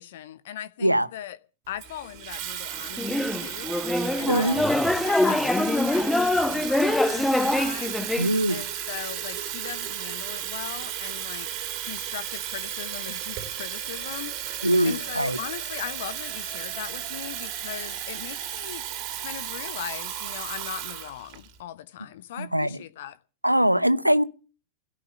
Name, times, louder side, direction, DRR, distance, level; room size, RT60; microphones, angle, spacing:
voice 1, 0.0-1.4 1.7-3.7 4.2-4.7 5.0-8.0 8.5-11.5 11.8-14.4 14.8-18.8 19.1-23.2, left 12 dB, 55° left, 1.0 m, -39 dB
Water tap faucet / Fill (with liquid), 1.8-21.6, right 11 dB, 40° right, 2.9 m, -34 dB
sound 1, 3.0-8.3, left 1 dB, 5° left, 1.2 m, -24 dB
voice 2, 4.3-4.6 8.2-8.6 14.6-15.4 22.4-22.8 23.4-24.2, right 1 dB, 90° right, 0.8 m, -22 dB
16.5 x 6.9 x 9.6 m
figure-of-eight pair, 90°, 0 cm